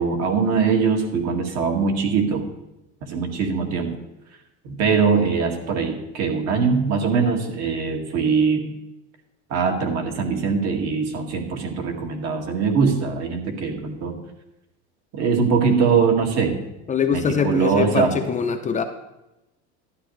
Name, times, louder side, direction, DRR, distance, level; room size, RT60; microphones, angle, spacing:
voice 1, 0.0-2.5 3.0-4.0 4.6-8.7 9.5-14.1 15.1-16.6 17.1-18.1, right 5 dB, 50° right, 2 dB, 2.2 m, -22 dB
voice 2, 16.9-18.8, left 7 dB, 25° left, 7 dB, 0.6 m, -23 dB
12.5 x 10.5 x 3.3 m, 0.93 s
supercardioid pair, 130°, 32 cm